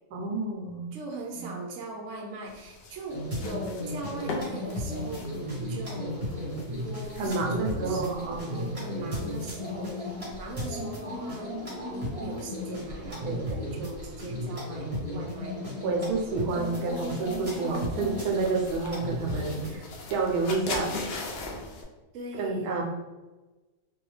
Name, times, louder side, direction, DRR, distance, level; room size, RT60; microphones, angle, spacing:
voice 1, 0.1-1.0 1.3-1.5 7.2-8.7 9.0-9.2 9.8-9.9 12.9-13.6 15.8-20.9 22.4-22.8, right 3 dB, 80° right, 0 dB, 1.1 m, -30 dB
voice 2, 0.9-15.7 22.1-22.8, right 1 dB, 65° right, 0 dB, 0.9 m, -40 dB
sound 1, 2.4-21.8, left 3 dB, 65° left, 0.6 m, -43 dB
sound 2, 3.1-19.8, left 1 dB, 30° right, 0.9 m, -35 dB
3.0 x 2.3 x 3.2 m, 1.2 s
omnidirectional pair, 1.6 m